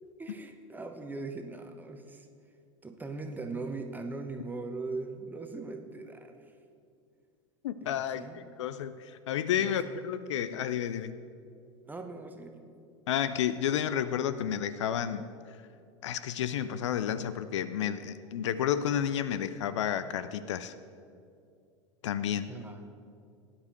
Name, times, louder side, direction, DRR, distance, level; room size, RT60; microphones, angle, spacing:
voice 1, 0.2-2.3 2.8-6.5 7.8-8.4 9.6-9.9 11.8-12.6 22.5-23.1, right 3 dB, 10° right, 6 dB, 1.0 m, -40 dB
voice 2, 7.6-11.2 13.1-15.6 16.0-20.7 22.0-22.5, left 9 dB, 65° left, 13 dB, 0.5 m, -31 dB
18.0 x 10.0 x 3.1 m, 2.4 s
figure-of-eight pair, 85°, 17 cm